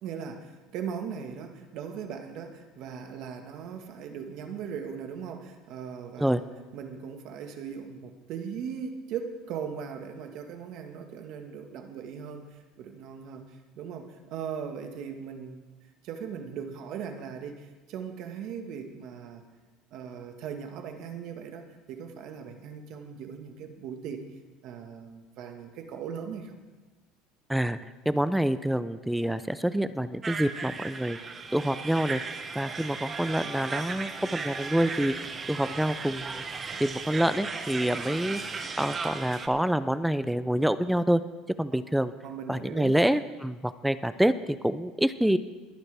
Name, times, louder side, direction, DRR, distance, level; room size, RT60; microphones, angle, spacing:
voice 1, 0.0-6.4 6.7-13.4 13.8-15.6 16.0-19.4 19.9-24.2 24.6-26.6 42.2-42.9, right 7 dB, 55° right, 5 dB, 1.5 m, -39 dB
voice 2, 28.1-31.2 31.5-32.2 32.6-35.1 35.5-36.4 36.8-38.4 38.8-41.2 41.6-42.1 42.5-45.4, right 1 dB, ahead, 14 dB, 0.3 m, -27 dB
sound 1, 30.2-39.5, right 4 dB, 20° right, 0.7 m, -36 dB
22.0 x 9.0 x 3.4 m, 1.3 s
cardioid pair, 150°, 0 cm